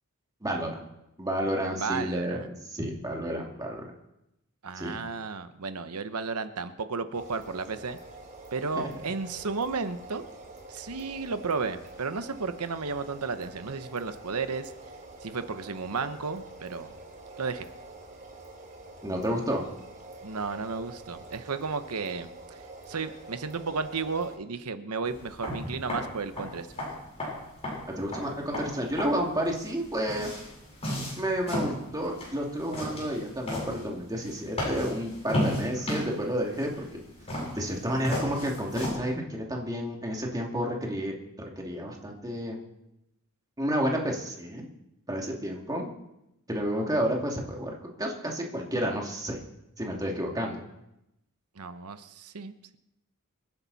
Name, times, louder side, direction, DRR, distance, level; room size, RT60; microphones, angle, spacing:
voice 1, 0.4-0.8 1.2-3.9 4.8-5.0 8.7-8.9 19.0-19.6 28.0-30.3 31.2-36.8 37.5-42.6 43.6-44.7 45.1-45.9 46.5-47.7 48.0-49.4 49.8-50.6, equal, 15° right, 0 dB, 2.5 m, -30 dB
voice 2, 1.7-2.5 4.6-8.0 8.5-10.2 10.7-14.7 15.2-16.9 17.4-17.7 20.2-22.6 22.9-26.7 51.6-52.8, right 4 dB, 85° right, 10 dB, 1.0 m, -33 dB
sound 1, 7.1-24.4, right 2 dB, 35° right, 3.2 m, -47 dB
sound 2, 25.0-39.0, left 1 dB, 30° left, 7.9 m, -35 dB
26.5 x 11.0 x 4.1 m, 0.88 s
head